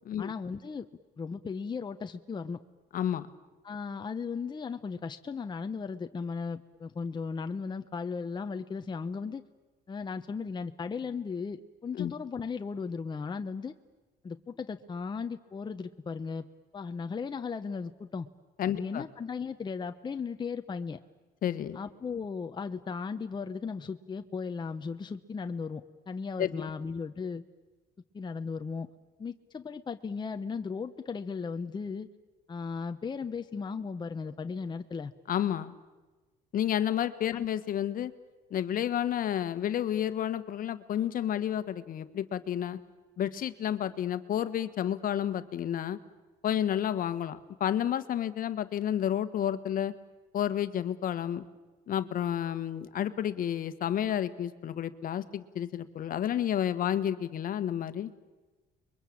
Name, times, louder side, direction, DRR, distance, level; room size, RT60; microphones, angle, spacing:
voice 1, 0.2-0.9 1.2-2.6 3.6-9.4 9.9-13.7 14.2-16.4 16.7-18.3 18.7-21.0 21.7-27.4 28.1-28.9 29.2-32.1 32.5-35.1 37.3-37.4, left 5 dB, 25° left, 7 dB, 1.0 m, -36 dB
voice 2, 2.9-3.3 11.9-12.1 18.6-19.1 21.4-21.8 26.4-26.7 35.3-35.8 36.5-38.1 38.5-42.8 43.2-46.0 46.4-49.9 50.3-51.4 51.9-58.1, left 10 dB, 55° left, 12 dB, 1.5 m, -30 dB
29.5 x 23.0 x 8.7 m, 1.2 s
cardioid pair, 110°, 17 cm